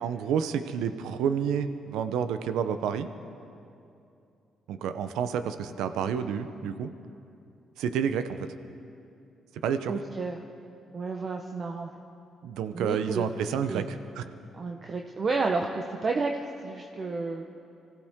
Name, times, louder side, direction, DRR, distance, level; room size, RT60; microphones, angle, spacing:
voice 1, 0.0-3.1 4.7-6.9 7.8-8.5 9.6-9.9 12.4-14.2, right 7 dB, 90° right, 10 dB, 0.7 m, -29 dB
voice 2, 9.9-10.4 10.9-11.9 12.7-13.9 14.5-17.4, right 3 dB, 40° right, 2 dB, 0.9 m, -31 dB
25.0 x 15.5 x 3.7 m, 2.6 s
cardioid pair, 90°, 0 cm